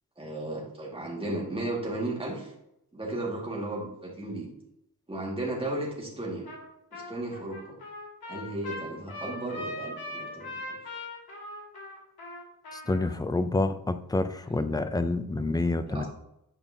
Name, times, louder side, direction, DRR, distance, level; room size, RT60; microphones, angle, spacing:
voice 1, 0.2-2.5 2.9-4.5 5.1-6.4 6.9-7.8 8.3-10.8 15.9-16.1, right 1 dB, 15° right, -3 dB, 1.8 m, -34 dB
Trumpet, 6.5-6.7 6.9-13.1, left 1 dB, 80° left, 2.3 m, -40 dB
voice 2, 12.7-16.1, left 2 dB, 10° left, 9 dB, 0.3 m, -28 dB
8.4 x 5.2 x 2.7 m, 0.82 s
wide cardioid pair, 130°, 37 cm